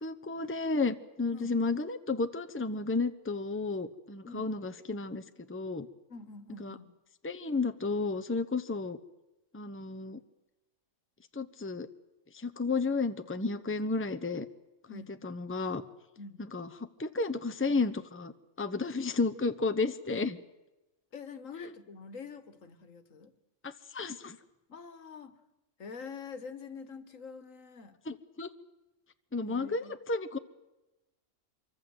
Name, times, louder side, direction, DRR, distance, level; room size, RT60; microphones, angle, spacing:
voice 1, 0.0-5.9 6.6-6.8 7.2-9.0 9.5-10.2 11.3-11.9 12.3-14.5 14.9-15.8 16.5-18.3 18.6-20.4 23.6-24.4 28.1-28.5 29.3-30.4, left 3 dB, 10° left, 10 dB, 0.9 m, -32 dB
voice 2, 4.2-4.6 6.1-6.9 14.9-15.2 16.2-16.4 21.1-23.3 24.7-25.4 25.8-28.0 29.4-29.9, left 5 dB, 75° left, 11 dB, 1.9 m, -46 dB
25.5 x 24.0 x 8.0 m, 1.0 s
omnidirectional pair, 1.4 m